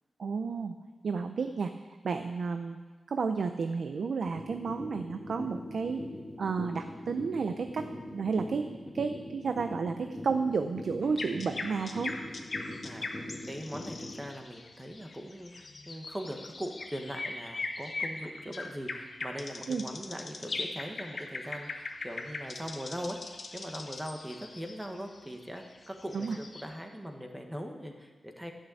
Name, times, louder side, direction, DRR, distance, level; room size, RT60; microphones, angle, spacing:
voice 1, 0.2-0.7 1.0-2.8 3.1-6.0 6.4-8.7 8.9-12.1 19.7-19.8 26.1-26.4, right 5 dB, 70° right, 7 dB, 0.6 m, -32 dB
sound 1, 4.3-14.3, left 1 dB, 15° left, 1.5 m, -41 dB
sound 2, 11.0-26.6, left 3 dB, 45° left, 1.1 m, -41 dB
voice 2, 12.8-23.2 23.5-28.5, equal, 10° right, 3 dB, 1.4 m, -41 dB
12.0 x 6.6 x 8.5 m, 1.3 s
wide cardioid pair, 115°, 0 cm